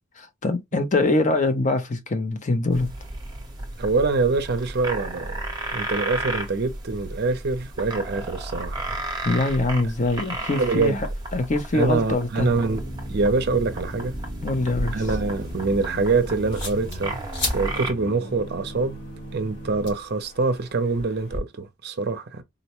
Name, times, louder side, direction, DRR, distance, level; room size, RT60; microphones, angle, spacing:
voice 1, 0.2-2.9 9.2-11.0 11.3-12.5 14.4-15.0, left 2 dB, 35° left, 0.6 m, -23 dB
sound 1, 2.7-17.9, right 2 dB, 20° right, 0.8 m, -34 dB
voice 2, 3.8-5.4 5.7-9.0 10.5-11.0 11.7-12.8 13.1-14.1 14.9-19.0 19.3-22.4, right 3 dB, 50° right, 0.5 m, -25 dB
sound 2, 12.4-19.9, equal, 20° left, 1.1 m, -37 dB
sound 3, 14.5-21.4, left 1 dB, 55° left, 1.8 m, -36 dB
3.9 x 2.1 x 2.9 m
head